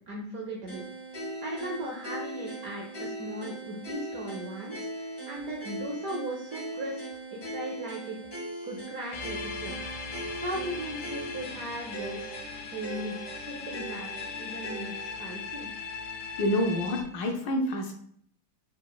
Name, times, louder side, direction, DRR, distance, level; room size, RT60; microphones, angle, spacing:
voice 1, 0.1-0.9 1.4-7.0 7.3-8.2 8.6-9.7 10.4-12.4 12.7-15.7, right 1 dB, 75° right, 0 dB, 0.8 m, -37 dB
sound 1, 0.7-15.1, right 1 dB, 35° left, 1.5 m, -40 dB
sound 2, 9.1-17.0, left 5 dB, 90° left, 1.6 m, -39 dB
voice 2, 16.4-17.9, left 1 dB, 70° left, 2 dB, 1.2 m, -27 dB
4.2 x 4.1 x 2.2 m, 0.64 s
omnidirectional pair, 2.2 m